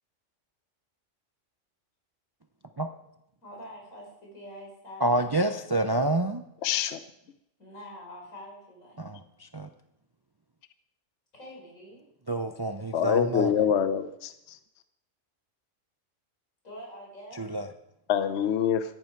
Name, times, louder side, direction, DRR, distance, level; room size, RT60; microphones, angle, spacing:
voice 1, 3.4-6.2 7.6-9.0 11.3-12.0 16.6-17.4, equal, 85° left, -2 dB, 5.4 m, -46 dB
voice 2, 5.0-6.4 9.0-9.7 12.3-13.5 17.3-17.7, right 1 dB, 30° right, 7 dB, 0.4 m, -28 dB
voice 3, 6.6-7.0 12.9-14.3 18.1-18.8, left 8 dB, 65° left, 11 dB, 0.9 m, -25 dB
14.0 x 11.5 x 4.7 m, 0.82 s
omnidirectional pair, 1.3 m